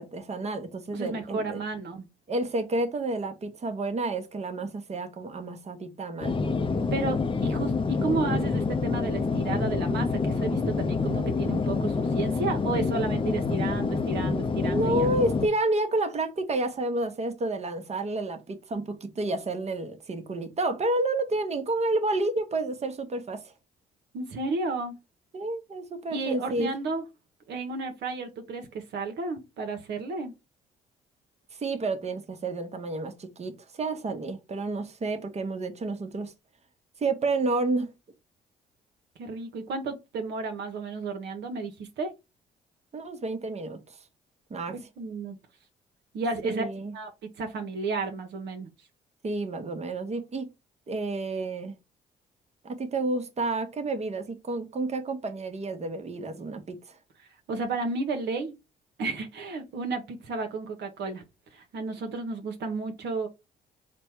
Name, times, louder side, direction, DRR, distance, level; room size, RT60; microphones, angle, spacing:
voice 1, 0.0-1.6 2.3-6.4 14.6-23.4 25.3-26.7 31.5-36.3 37.0-37.9 42.9-43.8 44.5-44.7 46.4-46.9 49.2-50.5 50.9-51.8 52.6-57.0, right 2 dB, 35° right, 1.0 m, -30 dB
voice 2, 0.9-2.1 6.9-15.1 24.1-25.0 26.1-27.0 27.5-30.3 39.2-42.1 44.7-45.4 46.1-46.6 46.9-47.1 47.4-48.7 57.5-58.5 59.0-61.2 61.5-63.3, right 3 dB, 70° right, 0.9 m, -32 dB
sound 1, 6.2-15.5, left 4 dB, 30° left, 0.6 m, -27 dB
4.3 x 2.2 x 4.3 m
hypercardioid pair, 55°, 19 cm